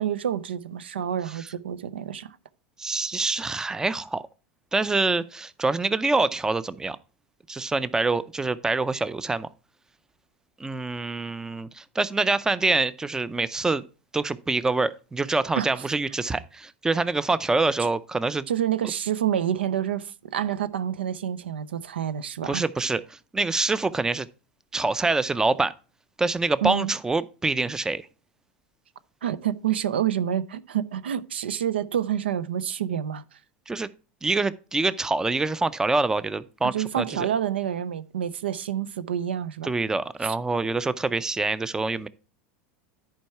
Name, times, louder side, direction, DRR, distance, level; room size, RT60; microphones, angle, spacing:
voice 1, 0.0-2.4 15.6-15.9 18.5-22.6 26.6-26.9 29.2-33.2 36.7-39.7 40.2-40.4, right 10 dB, 90° right, 0.5 m, -28 dB
voice 2, 2.8-4.2 4.7-7.0 7.5-9.5 10.6-13.8 14.1-18.5 22.4-24.3 24.7-25.7 26.2-28.1 33.7-33.9 34.2-37.3 39.6-42.1, right 3 dB, 10° right, 0.5 m, -25 dB
10.5 x 4.6 x 4.5 m
hypercardioid pair, 95°, 6 cm